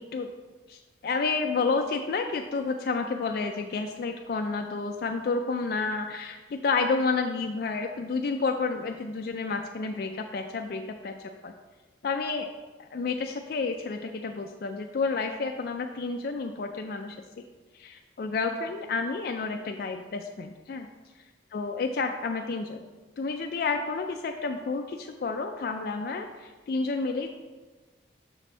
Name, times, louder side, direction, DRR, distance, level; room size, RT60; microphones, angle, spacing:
voice 1, 0.7-11.2 11.4-11.5 12.0-12.5 12.8-17.2 17.7-20.9 21.5-22.8 23.2-27.3, left 4 dB, 55° left, 4 dB, 0.3 m, -30 dB
6.3 x 4.2 x 4.5 m, 1.3 s
head